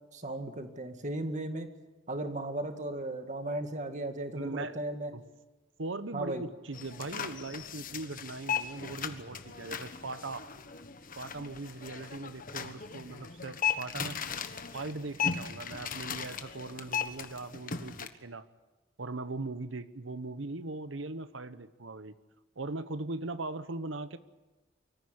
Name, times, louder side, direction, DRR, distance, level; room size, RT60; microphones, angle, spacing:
voice 1, 0.1-1.7 2.1-5.1 6.1-6.4, right 1 dB, 40° right, 7 dB, 2.0 m, -36 dB
voice 2, 4.3-4.8 5.1-5.2 5.8-10.5 11.2-14.2 14.7-18.4 19.0-22.1 22.6-24.2, right 2 dB, 80° right, 13 dB, 1.0 m, -40 dB
sound 1, 6.7-18.1, left 7 dB, 45° left, 1.3 m, -37 dB
24.5 x 14.5 x 10.0 m, 1.2 s
head